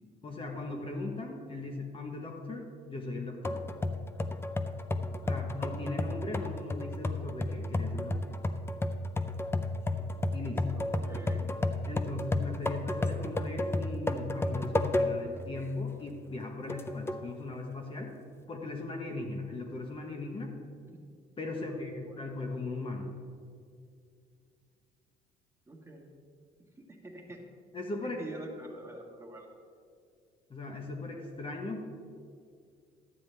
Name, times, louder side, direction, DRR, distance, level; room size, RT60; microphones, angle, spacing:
voice 1, 0.2-3.6 5.3-8.4 10.3-10.8 11.9-18.1 18.5-20.5 21.4-23.1 27.7-28.2 30.5-31.8, left 2 dB, 30° left, 2 dB, 1.2 m, -38 dB
sound 1, 3.4-15.4 15.8-15.9 16.7-17.3, left 2 dB, 15° left, 0.5 m, -32 dB
voice 2, 5.0-5.5 10.7-11.5 21.5-22.3 25.7-26.1 26.8-27.4 28.2-29.5, right 1 dB, 15° right, 0 dB, 1.6 m, -46 dB
12.0 x 9.0 x 3.3 m, 2.3 s
cardioid pair, 110°, 17 cm